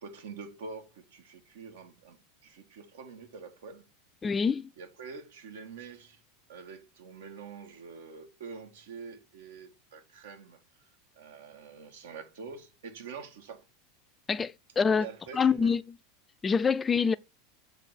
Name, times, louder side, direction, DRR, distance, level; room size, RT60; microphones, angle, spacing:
voice 1, 0.0-3.9 4.8-6.2 6.5-10.6 11.1-13.6 15.0-15.7, right 5 dB, 75° right, 1.5 m, -46 dB
voice 2, 4.2-4.7 14.3-15.1 15.3-15.8 16.4-17.2, left 6 dB, 25° left, 0.4 m, -25 dB
7.1 x 3.4 x 4.1 m
hypercardioid pair, 90°, 0 cm